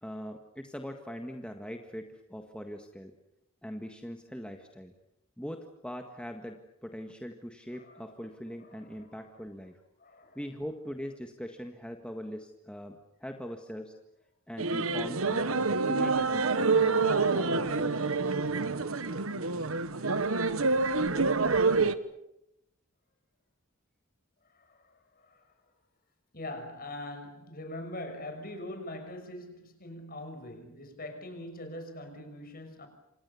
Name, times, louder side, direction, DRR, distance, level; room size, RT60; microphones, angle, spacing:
voice 1, 0.0-3.1 3.6-4.9 5.4-9.8 10.3-13.9 14.5-18.1, equal, 5° left, 4 dB, 1.7 m, -41 dB
voice 2, 7.7-8.3 8.6-9.3 10.0-10.4 19.3-19.4 24.5-25.5 26.3-32.9, left 1 dB, 45° left, 6 dB, 6.1 m, -43 dB
sound 1, 14.6-21.9, right 4 dB, 80° right, 1.4 m, -27 dB
28.5 x 26.5 x 7.1 m, 0.83 s
head